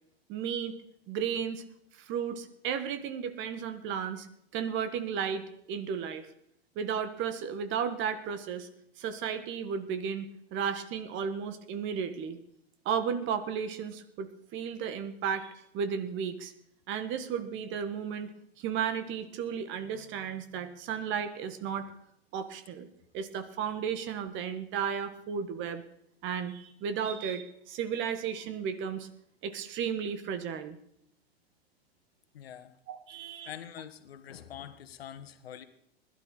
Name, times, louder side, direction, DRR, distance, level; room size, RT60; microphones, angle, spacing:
voice 1, 0.3-0.8 1.1-1.6 2.0-4.3 4.5-6.3 6.8-8.7 9.0-12.4 12.9-16.5 16.9-18.3 18.6-21.9 22.3-22.9 23.1-25.8 26.2-29.1 29.4-30.8 32.9-33.5, right 7 dB, 40° right, 10 dB, 1.8 m, -34 dB
voice 2, 32.3-32.8 33.4-35.6, left 9 dB, 70° left, 11 dB, 1.6 m, -45 dB
21.0 x 12.0 x 4.2 m, 0.73 s
hypercardioid pair, 100°, 31 cm